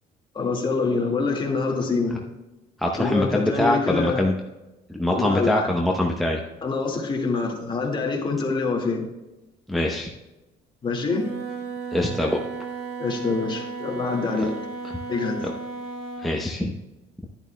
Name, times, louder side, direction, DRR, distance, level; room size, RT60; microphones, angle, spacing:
voice 1, 0.3-2.3 3.0-4.2 5.1-5.7 6.6-9.1 10.8-11.2 13.0-14.5 15.1-15.4, left 4 dB, 30° left, 1 dB, 1.9 m, -25 dB
voice 2, 2.8-4.3 5.0-6.4 9.7-10.1 11.9-12.4 16.2-16.7, left 1 dB, ahead, -1 dB, 0.8 m, -23 dB
Wind instrument woodwind instrument, 11.0-16.4, right 4 dB, 80° right, 1.4 m, -34 dB
10.5 x 10.5 x 2.2 m, 1.0 s
cardioid pair, 110°, 17 cm